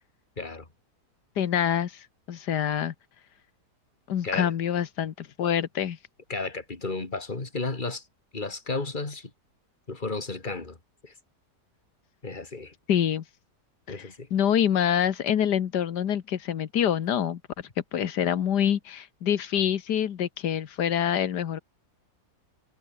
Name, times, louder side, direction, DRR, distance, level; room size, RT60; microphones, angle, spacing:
voice 1, 1.4-2.9 4.1-6.0 12.9-13.2 13.9-17.4 17.9-21.6, left 9 dB, 90° left, 1.8 m, -26 dB
voice 2, 6.3-8.0 8.3-9.3 9.9-10.8 11.0-11.1 12.2-12.7 13.9-14.3, left 3 dB, 30° left, 2.8 m, -33 dB
omnidirectional pair, 1.7 m